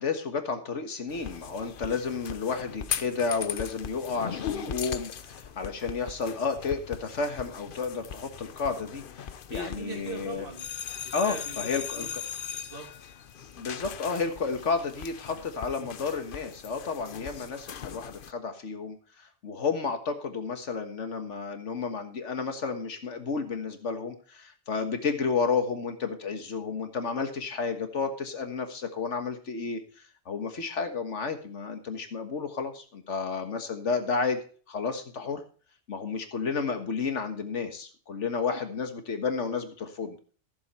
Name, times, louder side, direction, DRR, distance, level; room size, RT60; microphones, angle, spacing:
voice 1, 0.0-10.5 11.1-12.2 13.5-19.0 19.4-29.8 30.3-34.4 34.7-35.4 35.9-40.2, left 5 dB, 80° left, 7 dB, 1.8 m, -31 dB
sound 1, 1.1-18.3, left 8 dB, 55° left, 0.8 m, -39 dB
voice 2, 9.5-12.1 12.5-12.9 38.5-38.6, right 3 dB, 50° right, 0 dB, 3.4 m, -41 dB
15.0 x 7.3 x 4.3 m, 0.41 s
omnidirectional pair, 1.2 m